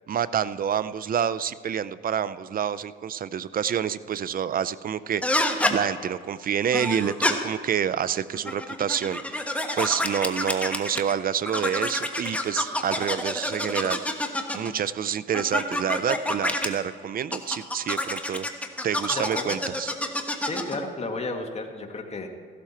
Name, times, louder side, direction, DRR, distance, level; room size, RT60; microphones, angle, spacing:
voice 1, 0.1-14.2 14.5-18.5 18.8-19.9, right 8 dB, 45° right, 16 dB, 0.5 m, -28 dB
sound 1, 5.2-5.7 6.7-7.3 8.3-11.1 11.4-14.7 15.3-16.7 17.3-20.8, left 1 dB, 5° left, 1.3 m, -27 dB
voice 2, 19.1-19.6 20.5-22.4, left 2 dB, 30° left, 4 dB, 1.8 m, -33 dB
15.5 x 12.5 x 4.4 m, 2.1 s
cardioid pair, 90°, 20 cm